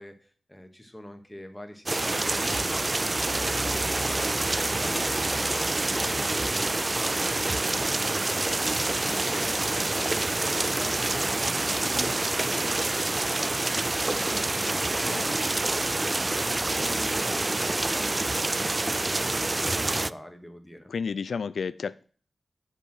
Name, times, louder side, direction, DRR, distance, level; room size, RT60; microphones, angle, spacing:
voice 1, 0.0-2.8 3.1-20.9, left 1 dB, 10° left, 6 dB, 2.1 m, -44 dB
sound 1, 1.9-20.1, right 2 dB, 35° right, 0.4 m, -27 dB
voice 2, 4.7-5.1 14.9-15.3 20.9-22.0, left 5 dB, 90° left, 15 dB, 0.3 m, -33 dB
7.1 x 7.0 x 6.3 m, 0.42 s
cardioid pair, 45°, 0 cm